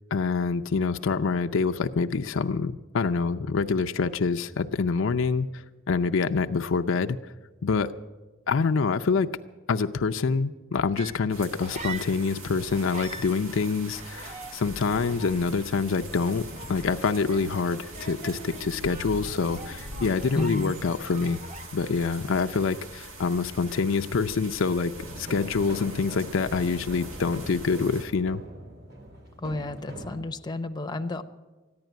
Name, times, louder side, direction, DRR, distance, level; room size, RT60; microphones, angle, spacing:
voice 1, 0.1-7.2 7.6-7.9 8.5-9.3 9.7-21.4 21.7-28.4, left 4 dB, 65° left, 7 dB, 0.5 m, -26 dB
sound 1, 10.9-12.4 12.7-22.0 22.3-22.7, right 3 dB, 35° right, 1.1 m, -44 dB
sound 2, 11.3-28.0, right 1 dB, 90° right, 2.0 m, -43 dB
voice 2, 20.3-20.7 29.4-31.2, left 2 dB, 20° left, 7 dB, 0.7 m, -31 dB
sound 3, 25.0-30.2, right 1 dB, 55° right, 2.9 m, -42 dB
14.5 x 10.5 x 9.1 m, 1.2 s
head